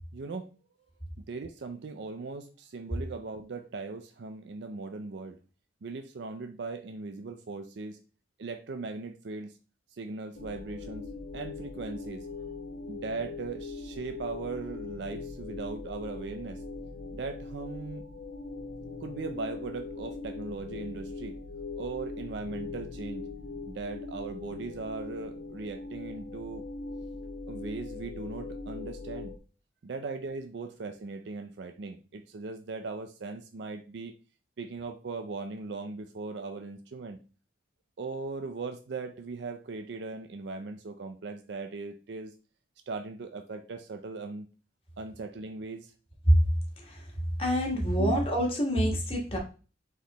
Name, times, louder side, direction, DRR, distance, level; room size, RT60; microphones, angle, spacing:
voice 1, 0.1-0.5 1.2-5.4 5.8-8.0 8.4-9.5 10.0-12.3 12.9-16.6 17.1-18.1 19.0-21.4 21.8-23.3 23.7-26.6 27.5-29.3 29.8-34.1 34.6-37.2 38.0-42.3 42.9-44.5 45.0-45.9 48.0-48.2, right 4 dB, 65° right, 6 dB, 0.4 m, -39 dB
sound 1, 10.3-29.4, left 3 dB, 65° left, 0.5 m, -41 dB
voice 2, 46.8-47.1 47.4-49.4, equal, 30° left, -1 dB, 1.3 m, -25 dB
4.2 x 3.1 x 4.0 m, 0.35 s
head